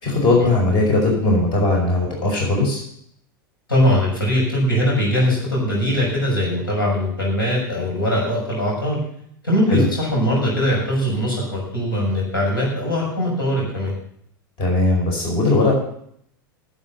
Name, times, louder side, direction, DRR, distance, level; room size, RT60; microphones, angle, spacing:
voice 1, 0.0-2.8 9.7-9.9 14.6-15.7, left 2 dB, 40° left, -1 dB, 5.1 m, -19 dB
voice 2, 3.7-9.0 9.4-13.9, equal, 90° left, -3 dB, 6.6 m, -21 dB
11.5 x 8.0 x 8.5 m, 0.68 s
figure-of-eight pair, 90°, 11 cm